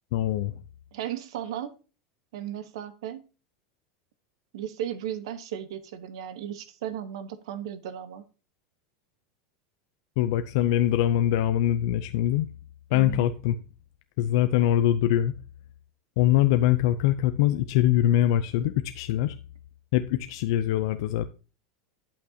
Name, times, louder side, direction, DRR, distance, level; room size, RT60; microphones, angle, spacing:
voice 1, 0.1-0.6 10.2-12.5 12.9-13.6 14.2-15.3 16.2-19.4 19.9-21.3, left 12 dB, 65° left, 0.4 m, -23 dB
voice 2, 0.9-1.8 2.3-3.3 4.5-8.2 12.9-13.3, right 10 dB, 80° right, 1.0 m, -35 dB
8.6 x 8.1 x 2.8 m
supercardioid pair, 155°, 3 cm